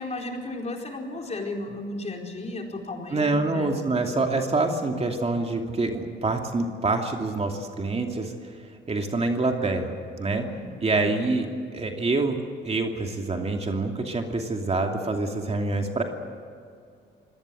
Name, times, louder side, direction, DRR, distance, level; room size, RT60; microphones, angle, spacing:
voice 1, 0.0-3.7 10.2-11.0, left 2 dB, 35° left, 1 dB, 4.5 m, -34 dB
voice 2, 3.1-8.3 8.9-10.4 10.8-11.5 11.7-16.0, right 3 dB, 30° right, 3 dB, 2.7 m, -26 dB
24.5 x 18.5 x 7.9 m, 2.3 s
cardioid pair, 90°, 20 cm